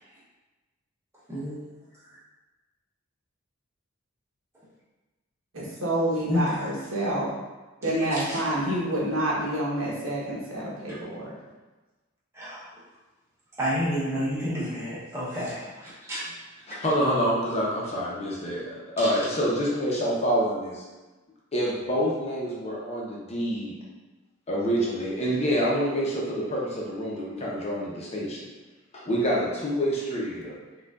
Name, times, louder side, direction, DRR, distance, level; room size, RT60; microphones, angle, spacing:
voice 1, 5.5-7.3 7.8-11.3, right 1 dB, 75° right, -6 dB, 1.1 m, -28 dB
voice 2, 8.0-8.4 12.4-12.7 13.6-16.3, equal, 15° right, -10 dB, 0.9 m, -30 dB
voice 3, 16.7-18.7 19.0-20.8 21.5-23.7 24.5-28.4 28.9-30.5, equal, 30° left, -5 dB, 0.7 m, -27 dB
4.5 x 2.4 x 2.4 m, 1.2 s
head